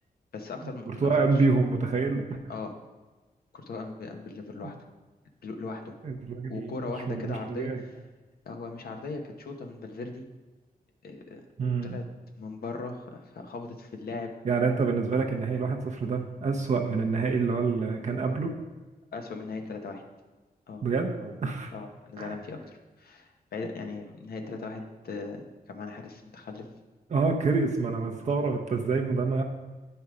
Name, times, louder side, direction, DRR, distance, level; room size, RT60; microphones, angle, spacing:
voice 1, 0.3-1.4 2.5-2.7 3.5-4.7 5.4-5.9 6.5-8.0 8.4-10.3 11.0-11.4 11.8-12.0 12.4-14.3 19.1-20.0 20.7-20.8 21.7-25.4 25.7-26.7, left 3 dB, 75° left, 4 dB, 1.0 m, -38 dB
voice 2, 0.9-2.4 6.0-6.7 7.1-7.8 11.6-12.0 14.4-18.5 20.8-21.7 22.2-22.3 27.1-29.4, right 4 dB, 50° right, 1 dB, 0.8 m, -27 dB
9.2 x 5.5 x 4.9 m, 1.2 s
wide cardioid pair, 155°, 16 cm